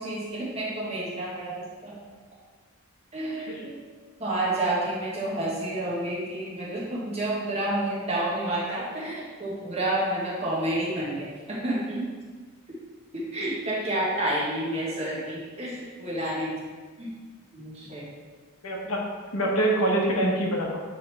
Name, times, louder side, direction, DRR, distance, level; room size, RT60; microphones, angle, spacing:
voice 1, 0.0-2.0 3.1-3.8 4.2-12.0 13.1-16.6 17.0-17.1 17.5-18.0, right 1 dB, 30° right, -6 dB, 1.5 m, -29 dB
voice 2, 18.6-19.0 19.3-20.8, right 1 dB, 75° left, -1 dB, 1.1 m, -25 dB
9.4 x 3.5 x 3.4 m, 1.5 s
head